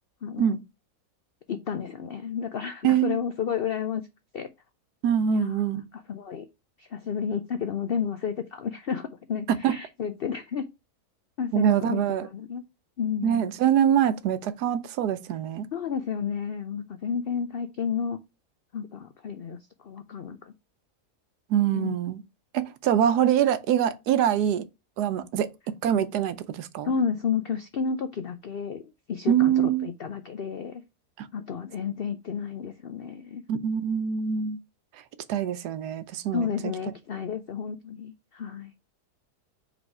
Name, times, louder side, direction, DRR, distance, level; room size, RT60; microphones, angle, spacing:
voice 1, 1.5-4.0 4.3-4.5 5.3-6.5 6.8-10.7 11.4-12.6 13.0-13.5 15.7-18.2 18.7-20.5 21.7-21.9 26.8-28.8 29.1-30.8 31.3-33.4 36.3-38.7, left 7 dB, 85° left, 0.5 m, -31 dB
voice 2, 2.8-3.2 5.0-5.8 9.5-9.7 11.5-12.3 13.2-15.7 21.5-22.2 22.5-24.6 25.0-25.5 25.8-26.9 29.3-29.9 31.2-31.3 33.5-34.6 35.3-36.5, right 9 dB, 80° right, 1.2 m, -24 dB
5.0 x 4.0 x 4.7 m
omnidirectional pair, 1.7 m